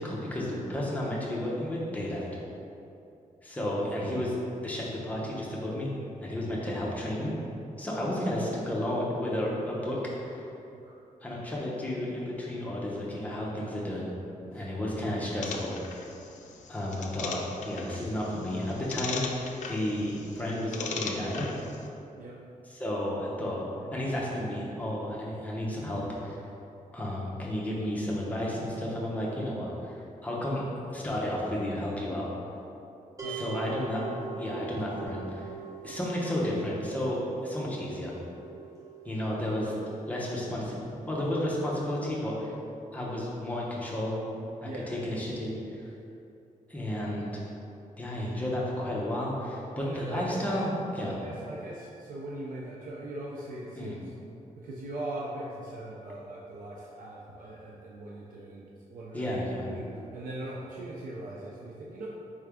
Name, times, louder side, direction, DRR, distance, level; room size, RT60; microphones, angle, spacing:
voice 1, 0.0-2.2 3.4-4.3 4.6-5.9 6.2-7.3 7.8-10.0 10.2-10.4 11.2-14.1 14.5-15.7 16.7-21.5 22.6-23.6 23.9-26.4 26.9-30.6 30.9-32.3 33.3-34.0 34.4-35.5 35.8-38.1 39.0-39.7 40.1-42.5 42.9-44.2 44.6-45.5 45.8-45.9 46.7-47.4 48.0-51.2 53.8-54.0 59.1-59.7, left 1 dB, 10° left, -5 dB, 0.7 m, -32 dB
sound 1, 15.4-21.9, left 5 dB, 65° left, 0.4 m, -39 dB
sound 2, 33.2-44.3, right 9 dB, 25° right, 0.7 m, -45 dB
voice 2, 49.8-50.6 51.1-53.9 54.6-59.3 59.6-62.1, right 1 dB, 85° right, -4 dB, 0.5 m, -40 dB
4.7 x 3.2 x 3.5 m, 2.7 s
wide cardioid pair, 180°, 14 cm